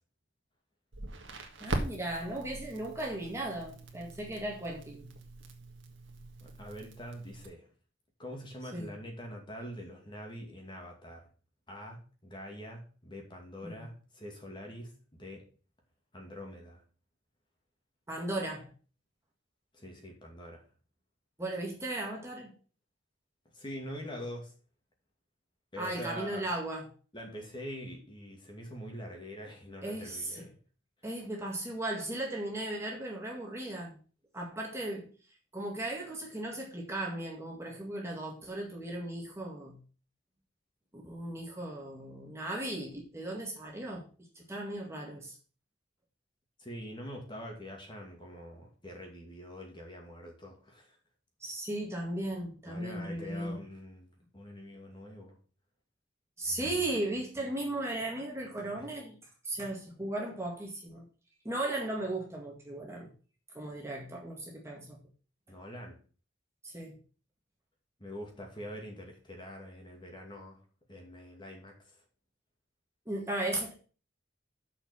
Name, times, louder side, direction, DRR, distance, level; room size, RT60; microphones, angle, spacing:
Crackle, 0.9-7.5, right 1 dB, 75° right, 1.7 m, -41 dB
voice 1, 1.6-5.1 8.7-8.9 13.6-13.9 18.1-18.6 21.4-22.5 25.8-26.9 29.8-30.4 31.0-33.9 34.3-35.1 35.5-39.8 40.9-44.1 44.4-45.4 51.4-53.6 56.4-59.2 59.4-61.1 61.4-63.1 63.5-65.0 66.6-67.0 73.1-73.7, right 1 dB, 15° right, -1 dB, 1.9 m, -36 dB
voice 2, 6.4-7.7 8.2-11.3 11.7-15.4 16.1-16.8 19.7-20.7 23.5-24.5 25.7-26.4 27.1-30.6 46.6-51.0 52.6-55.4 58.8-58.9 65.5-66.0 68.0-70.6 70.9-72.0, equal, 25° left, 1 dB, 2.3 m, -44 dB
6.9 x 5.8 x 7.0 m, 0.38 s
head